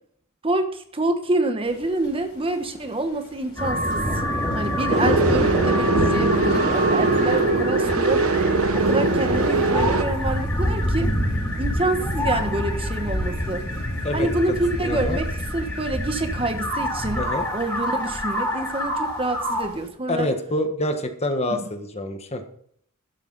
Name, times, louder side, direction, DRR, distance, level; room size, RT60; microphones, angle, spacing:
voice 1, 0.4-4.2 4.5-11.1 11.6-13.6 14.1-17.3 17.5-20.3, right 2 dB, 25° right, 7 dB, 1.2 m, -27 dB
sound 1, 1.7-19.9, equal, 50° left, 4.9 m, -37 dB
sound 2, 3.6-19.7, equal, 10° left, 4.3 m, -26 dB
sound 3, 4.9-10.0, right 3 dB, 85° right, 1.1 m, -21 dB
voice 2, 14.8-15.2 17.2-17.5 20.1-22.4, left 1 dB, 30° left, 6 dB, 1.4 m, -26 dB
12.5 x 11.5 x 4.1 m, 0.64 s
head